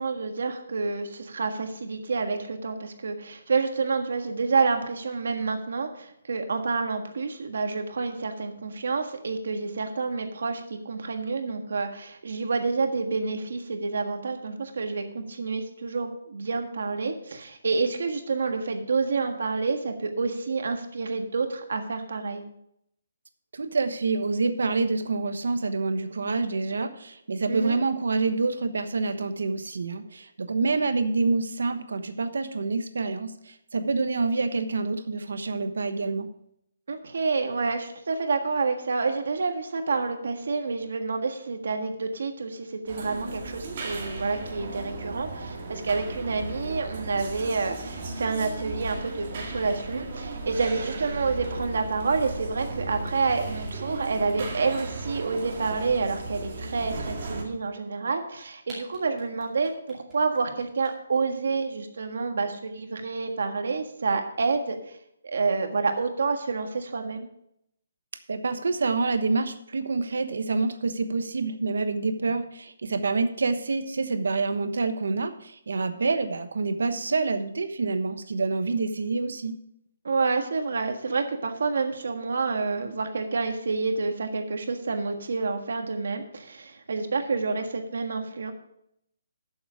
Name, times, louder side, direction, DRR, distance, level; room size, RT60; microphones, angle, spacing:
voice 1, 0.0-22.4 27.5-27.8 36.9-65.0 65.2-67.3 80.0-88.5, right 4 dB, 65° right, 6 dB, 1.5 m, -28 dB
voice 2, 23.5-36.3 68.3-79.6, right 3 dB, 85° right, 9 dB, 1.2 m, -27 dB
sound 1, 42.9-57.4, right 2 dB, 35° right, 2.0 m, -36 dB
sound 2, 58.7-61.2, right 1 dB, 10° right, 2.4 m, -46 dB
12.0 x 7.1 x 4.9 m, 0.74 s
hypercardioid pair, 175°, 0 cm